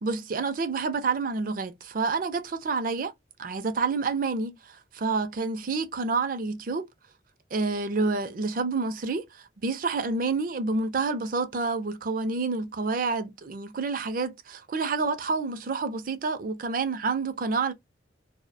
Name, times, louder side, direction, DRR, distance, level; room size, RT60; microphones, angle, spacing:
voice 1, 0.0-3.1 3.4-6.8 7.5-17.7, right 4 dB, 45° right, 0.4 m, -28 dB
2.3 x 2.0 x 2.6 m
head